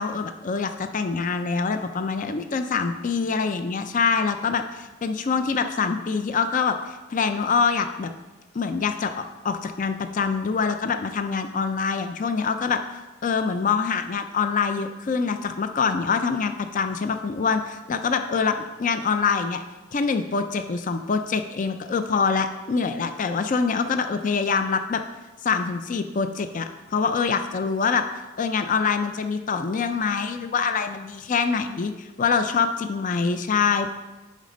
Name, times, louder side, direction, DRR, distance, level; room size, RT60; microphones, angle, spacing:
voice 1, 0.0-8.1 8.5-12.8 13.2-19.6 19.9-25.0 25.4-28.0 28.4-33.9, left 5 dB, 40° left, 8 dB, 0.4 m, -25 dB
10.5 x 4.2 x 5.1 m, 1.1 s
head